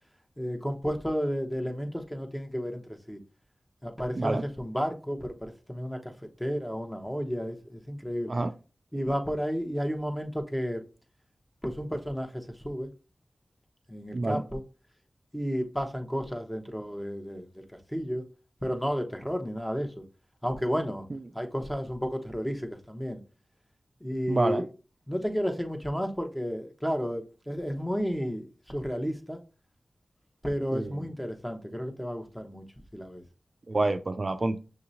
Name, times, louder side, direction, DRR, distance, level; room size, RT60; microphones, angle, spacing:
voice 1, 0.4-3.2 3.8-6.1 6.4-8.3 8.9-10.8 11.6-12.9 13.9-14.6 15.3-18.2 18.6-20.0 20.4-21.1 21.3-23.2 24.0-24.7 25.1-29.4 30.4-32.6 32.9-33.2, equal, 10° left, 0.9 m, -32 dB
voice 2, 24.3-24.6 30.7-31.0 33.7-34.6, right 2 dB, 50° right, 0.3 m, -27 dB
6.3 x 2.8 x 2.6 m
wide cardioid pair, 60°, 0 cm